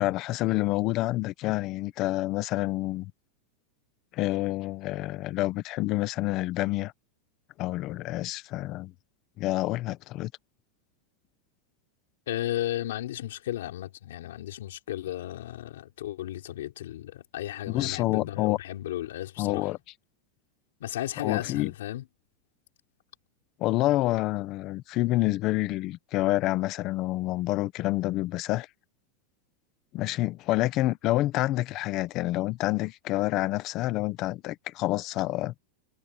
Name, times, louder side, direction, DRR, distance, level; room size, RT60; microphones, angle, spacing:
voice 1, 0.0-3.1 4.1-6.9 7.6-8.9 9.4-10.3 17.7-18.6 19.4-19.8 21.2-21.7 23.6-28.7 29.9-35.6, left 17 dB, 40° left, 1.0 m, -28 dB
voice 2, 12.3-19.7 20.8-22.0, left 13 dB, 90° left, 5.0 m, -34 dB
supercardioid pair, 155°, 0 cm